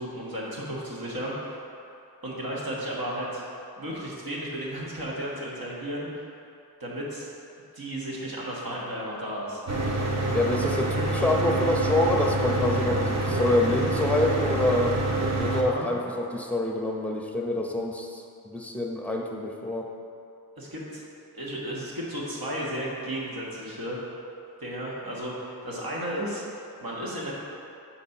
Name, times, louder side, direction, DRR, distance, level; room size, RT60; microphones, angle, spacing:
voice 1, 0.0-1.6 2.2-3.4 3.8-6.3 6.8-7.3 7.7-9.6 15.5-16.0 20.6-21.0 21.3-24.0 24.6-26.4 26.8-27.3, equal, 65° right, -5 dB, 1.6 m, -34 dB
Mechanical fan, 9.7-15.6, right 2 dB, 45° right, 0.9 m, -26 dB
voice 2, 10.3-15.0 15.4-19.9, left 1 dB, 5° left, 0 dB, 0.7 m, -26 dB
5.9 x 4.3 x 5.4 m, 2.6 s
wide cardioid pair, 80°, 38 cm